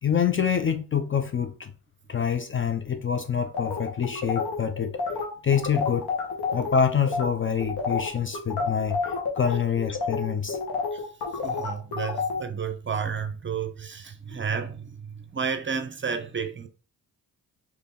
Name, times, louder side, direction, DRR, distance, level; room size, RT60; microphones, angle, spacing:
voice 1, 0.0-1.7 2.1-5.0 5.4-6.1 6.5-10.6 14.3-14.4, left 7 dB, 30° left, 0.5 m, -26 dB
sound 1, 3.5-6.8 7.1-7.3 7.6-12.4, left 4 dB, 70° left, 1.4 m, -29 dB
voice 2, 11.4-16.7, right 6 dB, 30° right, 0.7 m, -31 dB
3.4 x 3.2 x 4.1 m
supercardioid pair, 60°, 41 cm